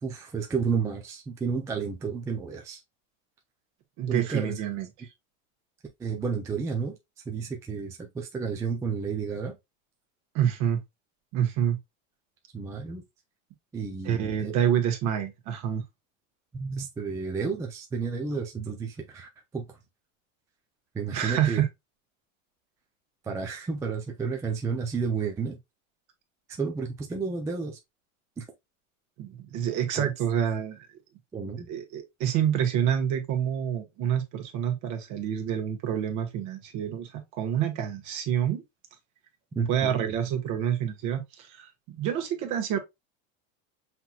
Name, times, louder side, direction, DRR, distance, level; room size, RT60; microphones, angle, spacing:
voice 1, 0.0-2.8 4.1-4.6 6.0-7.0 7.3-9.6 12.5-13.0 13.7-14.6 16.5-19.6 20.9-21.6 23.2-25.6 26.6-27.8 28.4-28.5 29.9-30.1 31.3-31.7 39.6-40.1, right 5 dB, 10° right, 0.4 m, -31 dB
voice 2, 4.0-5.1 10.3-10.8 11.3-11.8 14.0-15.8 21.1-21.7 29.2-30.9 31.7-38.6 39.7-42.8, right 9 dB, 50° right, 1.2 m, -27 dB
5.7 x 3.0 x 2.3 m
supercardioid pair, 135°, 40 cm